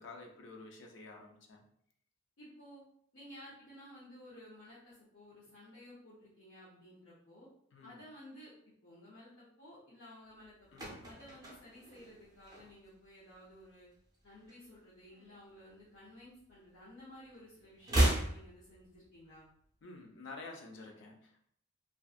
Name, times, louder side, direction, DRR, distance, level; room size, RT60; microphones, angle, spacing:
voice 1, 0.0-1.6 7.7-8.0 10.7-10.9 19.8-21.5, left 3 dB, 60° left, 2 dB, 0.4 m, -50 dB
voice 2, 2.4-7.5 7.8-8.5 8.8-13.9 14.2-19.4, equal, 80° left, -9 dB, 0.8 m, -55 dB
sound 1, 10.4-13.1 13.3-13.6 13.9-15.4 15.7-17.0 17.3-19.4 19.6-19.7, right 1 dB, 15° right, 0.5 m, -35 dB
2.5 x 2.3 x 2.3 m, 0.67 s
head